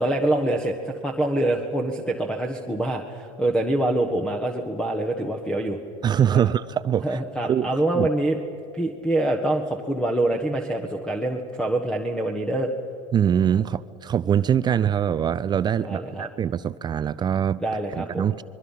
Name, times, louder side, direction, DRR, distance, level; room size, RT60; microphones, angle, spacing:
voice 1, 0.0-5.8 6.3-6.5 7.0-8.4 8.7-12.7 15.8-16.3 17.6-18.3, right 1 dB, 5° left, 4 dB, 1.5 m, -25 dB
voice 2, 6.0-7.2 7.5-8.1 13.1-17.6 18.0-18.4, right 9 dB, 25° right, 15 dB, 0.5 m, -23 dB
27.5 x 22.0 x 5.7 m, 2.7 s
supercardioid pair, 105°, 16 cm